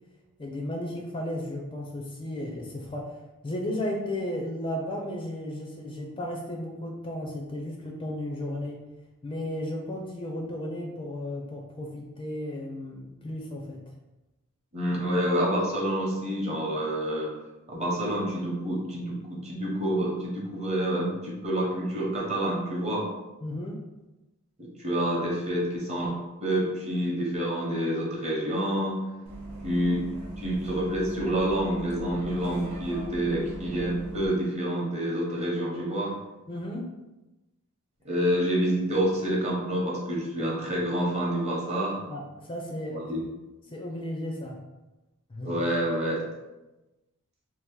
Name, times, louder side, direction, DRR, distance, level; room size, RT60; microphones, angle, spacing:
voice 1, 0.4-3.2 3.4-8.8 9.2-13.8 23.4-23.8 36.5-36.8 42.1-42.2 42.5-43.1 43.7-44.6 45.3-45.5, left 1 dB, 25° left, -1 dB, 0.4 m, -34 dB
voice 2, 14.7-17.3 17.7-23.1 24.6-29.0 29.6-30.0 30.4-36.2 38.0-42.0 42.9-43.2 45.4-46.2, right 1 dB, 30° right, -3 dB, 0.8 m, -28 dB
Bus, 29.3-34.3, right 2 dB, 90° right, 0.7 m, -40 dB
2.7 x 2.4 x 3.7 m, 1.0 s
head